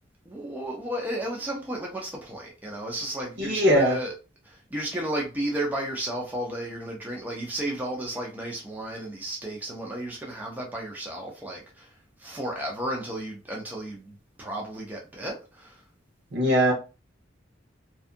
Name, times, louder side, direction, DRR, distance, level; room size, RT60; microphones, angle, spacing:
voice 1, 0.3-4.1 4.5-11.9 12.2-15.8, right 1 dB, 10° right, 0.5 m, -33 dB
voice 2, 3.4-4.0 16.3-16.7, equal, 65° right, 0.9 m, -20 dB
2.6 x 2.3 x 2.5 m
head